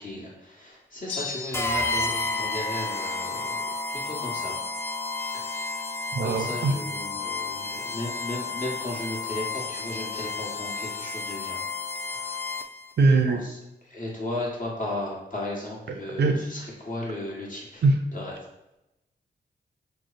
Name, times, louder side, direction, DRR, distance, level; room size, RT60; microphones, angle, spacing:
voice 1, 0.0-3.6 3.9-4.6 5.1-5.8 6.2-11.6 11.9-12.4 13.0-17.8 18.1-18.4, left 1 dB, 45° left, -4 dB, 1.3 m, -35 dB
sound 1, 1.1-2.1, left 5 dB, 80° left, 0.5 m, -36 dB
sound 2, 1.5-12.9, left 3 dB, 15° left, 0.3 m, -31 dB
voice 2, 6.1-6.8 13.0-13.4 16.2-16.4 17.8-18.0, right 3 dB, 60° right, 5 dB, 0.5 m, -21 dB
3.2 x 2.0 x 4.0 m, 0.90 s
cardioid pair, 45°, 19 cm